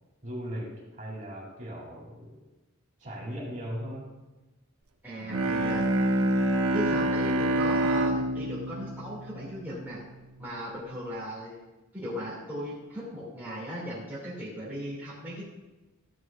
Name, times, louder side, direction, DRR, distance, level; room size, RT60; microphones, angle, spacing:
voice 1, 0.2-2.4 3.0-4.1, equal, 35° right, -3 dB, 2.8 m, -38 dB
voice 2, 5.0-6.2 6.7-10.0 10.4-11.6 11.9-15.5, equal, 10° right, -8 dB, 2.1 m, -37 dB
Bowed string instrument, 5.2-10.1, right 1 dB, 65° right, 0.7 m, -27 dB
13.5 x 8.0 x 2.4 m, 1.1 s
head